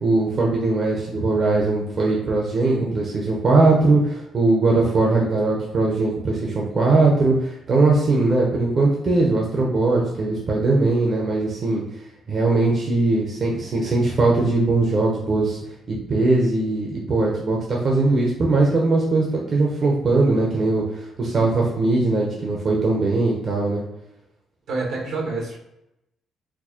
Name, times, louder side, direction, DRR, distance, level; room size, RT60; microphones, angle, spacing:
voice 1, 0.0-11.8 12.3-15.6 15.9-23.8, right 3 dB, 50° right, -2 dB, 0.7 m, -20 dB
voice 2, 24.7-25.6, right 3 dB, 80° right, -2 dB, 1.3 m, -28 dB
4.4 x 2.1 x 2.8 m, 0.87 s
cardioid pair, 90°, 0 cm